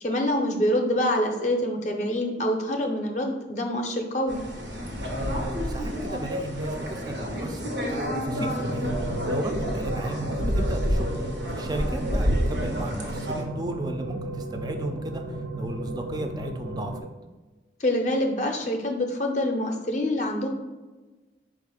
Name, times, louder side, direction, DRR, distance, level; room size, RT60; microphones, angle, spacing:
voice 1, 0.0-4.4 17.8-20.5, left 1 dB, 40° left, 3 dB, 0.5 m, -26 dB
sound 1, 4.3-13.4, equal, 90° right, 0.9 m, -29 dB
voice 2, 5.1-7.6 7.9-11.1 11.5-17.1, right 1 dB, 20° right, 5 dB, 0.3 m, -35 dB
sound 2, 8.3-17.0, right 1 dB, 75° right, 0.5 m, -34 dB
4.4 x 2.4 x 4.8 m, 1.2 s
head